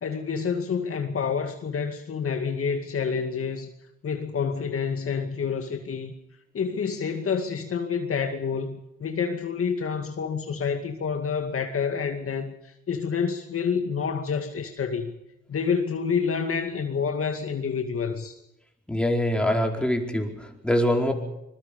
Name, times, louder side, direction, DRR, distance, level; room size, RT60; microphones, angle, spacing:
voice 1, 0.0-3.7 4.0-6.1 6.5-15.2 15.5-18.4, left 6 dB, 45° left, 5 dB, 2.2 m, -28 dB
voice 2, 18.9-21.1, left 1 dB, 5° left, 2 dB, 4.7 m, -24 dB
25.5 x 21.5 x 5.4 m, 0.88 s
cardioid pair, 90°, 30 cm